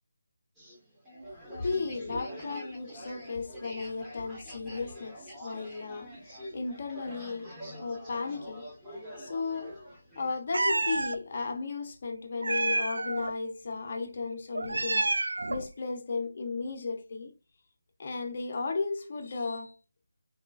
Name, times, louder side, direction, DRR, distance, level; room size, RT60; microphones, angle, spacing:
sound 1, 0.6-10.4, equal, 5° right, 1.2 m, -45 dB
voice 1, 1.3-7.5 7.8-9.7 10.2-15.1 15.5-17.3 18.0-19.8, left 4 dB, 45° left, 0.8 m, -35 dB
Meow, 10.5-11.2 12.4-13.3 14.5-15.7, right 2 dB, 80° right, 0.3 m, -29 dB
4.1 x 2.9 x 2.3 m
figure-of-eight pair, 165°, 0 cm